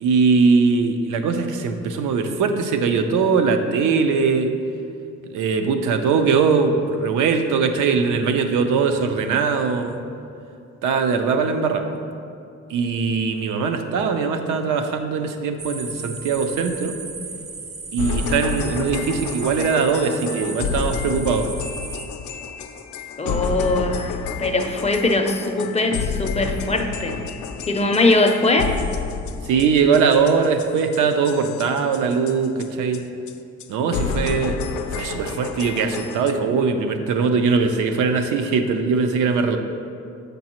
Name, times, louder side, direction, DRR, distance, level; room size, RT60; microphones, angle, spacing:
voice 1, 0.0-4.5 5.3-10.0 10.8-11.9 12.7-17.0 17.9-21.5 29.5-33.0 33.7-34.6 34.9-39.6, right 5 dB, 80° right, 6 dB, 0.6 m, -21 dB
sound 1, 15.6-22.1, right 4 dB, 45° right, 0.7 m, -35 dB
sound 2, 18.0-32.7 32.9-33.0 33.3-33.4 33.6-33.7 33.9-36.3, left 6 dB, 70° left, 0.5 m, -30 dB
voice 2, 23.2-24.1 24.4-27.2 27.7-28.7, left 2 dB, 20° left, 4 dB, 0.5 m, -21 dB
7.3 x 5.3 x 2.9 m, 2.6 s
cardioid pair, 90°, 30 cm